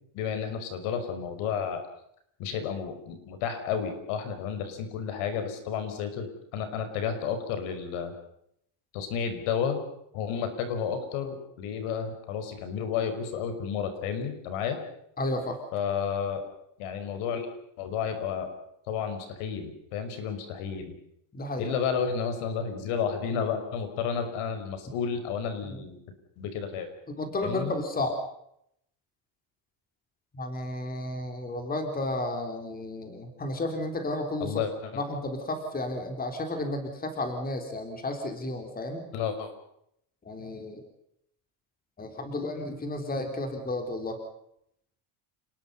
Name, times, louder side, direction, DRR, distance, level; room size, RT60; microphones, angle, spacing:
voice 1, 0.1-1.8 2.4-6.3 6.5-8.1 8.9-9.8 10.1-14.8 15.7-16.4 16.8-17.5 17.8-18.5 18.9-20.9 21.6-26.0 26.4-26.9 27.4-27.7 34.4-34.9 39.1-39.5, left 7 dB, 85° left, 8 dB, 5.8 m, -31 dB
voice 2, 15.2-15.6 21.3-21.7 25.7-25.8 27.1-28.2 30.3-34.6 35.0-39.1 40.3-40.8 42.0-44.2, left 2 dB, 15° left, 5 dB, 3.7 m, -32 dB
29.0 x 20.5 x 5.6 m, 0.73 s
cardioid pair, 175°, 50 cm